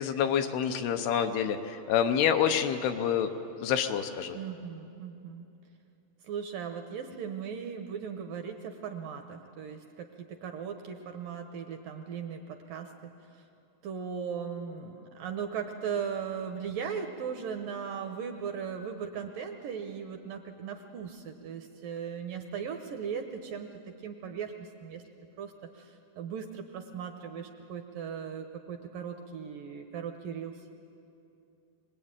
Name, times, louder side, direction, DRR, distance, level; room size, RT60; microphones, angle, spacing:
voice 1, 0.0-3.3 3.6-4.4, left 8 dB, 75° left, 7 dB, 2.8 m, -27 dB
voice 2, 4.3-5.5 6.2-13.4 13.8-25.0 25.4-30.5, right 7 dB, 75° right, 5 dB, 2.2 m, -38 dB
24.0 x 20.5 x 8.9 m, 2.7 s
omnidirectional pair, 4.8 m